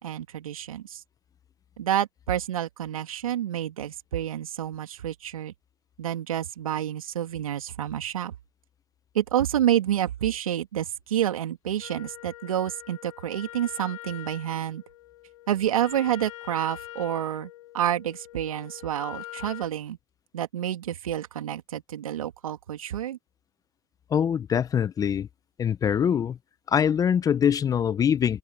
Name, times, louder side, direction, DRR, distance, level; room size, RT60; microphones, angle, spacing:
voice 1, 0.0-1.0 1.8-5.5 6.0-8.3 9.1-14.8 15.5-20.0 20.3-23.2, right 11 dB, 80° right, 2.7 m, -29 dB
Wind instrument woodwind instrument, 11.8-19.8, left 15 dB, 70° left, 2.9 m, -44 dB
voice 2, 24.1-25.3 25.6-26.4 26.7-28.4, left 8 dB, 20° left, 0.8 m, -23 dB
hypercardioid pair, 120°, 18 cm